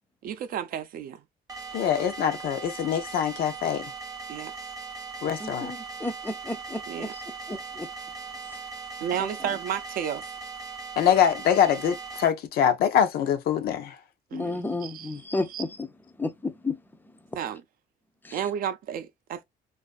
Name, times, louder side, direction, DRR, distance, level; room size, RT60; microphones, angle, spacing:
voice 1, 0.2-1.2 4.3-4.5 6.9-7.1 9.0-10.3 14.3-15.2 15.5-15.6 17.4-17.6 18.3-19.4, right 9 dB, 60° right, 0.5 m, -32 dB
sound 1, 1.5-12.3, right 4 dB, 20° right, 0.7 m, -39 dB
voice 2, 1.7-3.9 5.2-5.7 11.0-13.9, left 9 dB, 65° left, 0.5 m, -24 dB
voice 3, 5.4-7.1 7.5-7.9 8.5-8.6 9.4-9.5 14.3-15.9 16.2-16.8 18.2-18.4, left 2 dB, 10° left, 0.4 m, -32 dB
2.4 x 2.4 x 2.3 m
cardioid pair, 110°, 17 cm